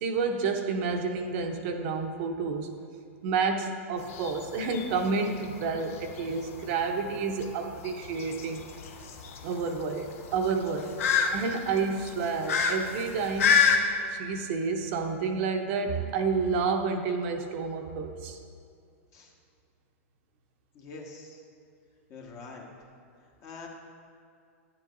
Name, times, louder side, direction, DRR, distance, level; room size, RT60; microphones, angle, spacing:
voice 1, 0.0-2.7 3.2-8.6 9.4-11.0 11.3-13.7 14.1-18.4, right 4 dB, 55° right, 4 dB, 0.7 m, -30 dB
sound 1, 4.0-13.8, left 6 dB, 70° left, 0.7 m, -29 dB
voice 2, 20.7-21.4 22.1-22.7 23.4-23.7, left 3 dB, 45° left, -1 dB, 1.5 m, -44 dB
10.5 x 7.6 x 2.6 m, 2.4 s
hypercardioid pair, 110°, 8 cm